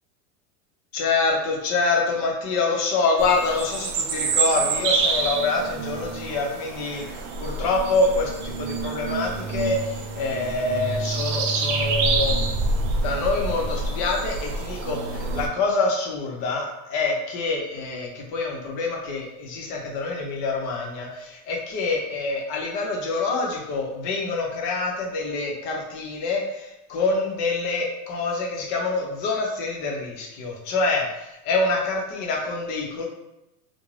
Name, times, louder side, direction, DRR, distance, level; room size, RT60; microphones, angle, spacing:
voice 1, 0.9-12.4 13.0-33.0, left 3 dB, 40° left, -1 dB, 0.7 m, -26 dB
sound 1, 3.2-15.5, right 4 dB, 55° right, 0.5 m, -27 dB
2.4 x 2.1 x 3.1 m, 0.91 s
supercardioid pair, 150°, 44 cm